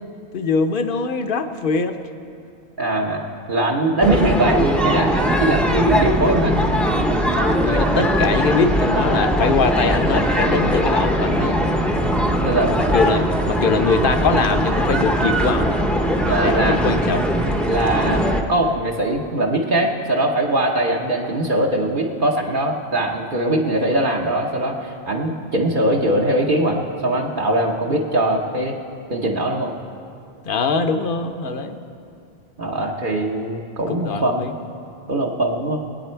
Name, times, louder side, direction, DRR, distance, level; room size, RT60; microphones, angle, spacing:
voice 1, 0.3-2.0 7.3-11.6 12.8-15.8 16.4-17.3 30.5-31.8 33.9-34.5, left 4 dB, 60° left, 7 dB, 0.9 m, -22 dB
voice 2, 2.8-6.7 12.4-12.7 16.3-16.8 17.7-18.2 18.5-28.7 29.1-29.7 32.6-34.5 35.1-35.8, right 1 dB, 55° right, -1 dB, 1.1 m, -21 dB
sound 1, 4.0-18.4, equal, ahead, 0.6 m, -20 dB
21.5 x 9.2 x 4.5 m, 2.5 s
omnidirectional pair, 1.1 m